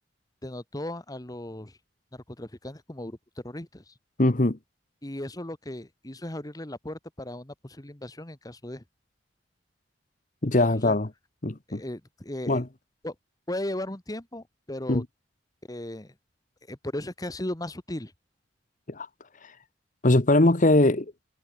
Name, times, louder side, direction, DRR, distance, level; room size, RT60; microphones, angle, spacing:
voice 1, 0.4-1.8 2.1-3.9 5.0-8.8 10.5-11.0 11.7-12.6 13.0-13.1 13.5-15.0 15.7-16.1 16.7-18.1, left 1 dB, 20° left, 1.5 m, -36 dB
voice 2, 4.2-4.6 10.4-11.1 11.4-11.8 12.5-12.6 14.9-15.0 18.9-19.1 20.0-21.0, left 2 dB, 45° left, 1.3 m, -21 dB
head